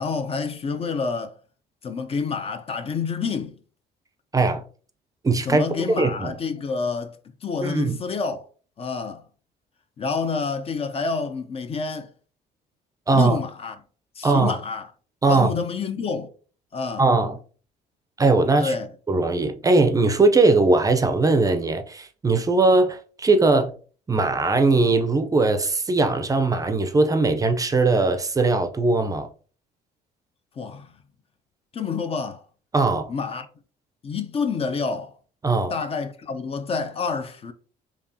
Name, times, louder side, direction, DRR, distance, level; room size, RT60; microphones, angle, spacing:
voice 1, 0.0-1.3 1.8-3.6 5.5-7.2 7.4-8.4 8.8-9.2 10.0-12.1 13.1-13.8 14.2-14.9 15.3-16.3 16.7-17.0 18.6-18.9 30.6-30.9 31.7-32.4 33.1-33.5 34.0-35.1 35.7-37.5, left 5 dB, 35° left, 0.5 m, -28 dB
voice 2, 4.3-4.6 5.2-5.6 6.0-6.3 7.6-8.0 13.1-13.4 14.2-14.6 15.2-15.5 17.0-17.4 18.2-18.7 19.1-23.7 24.1-29.3 32.7-33.1 35.4-35.7, right 3 dB, 20° right, 0.5 m, -20 dB
4.7 x 2.8 x 2.7 m
cardioid pair, 110°, 17 cm